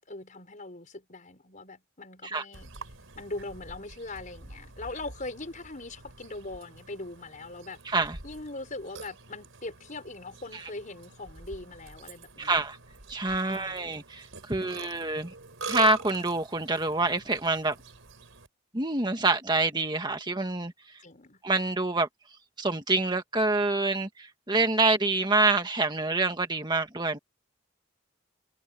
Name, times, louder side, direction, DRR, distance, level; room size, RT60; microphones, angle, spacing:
voice 1, 0.0-2.7 3.1-7.8 8.2-12.7 13.5-14.0 14.6-15.1 21.0-21.4, left 2 dB, 40° left, 5.6 m, -41 dB
Burping eructation, 2.5-18.5, right 3 dB, 85° right, 3.9 m, -46 dB
voice 2, 7.9-8.2 12.4-12.8 13.1-15.3 15.7-17.7 18.7-20.7 21.4-22.1 22.6-27.2, right 3 dB, 20° right, 1.7 m, -26 dB
head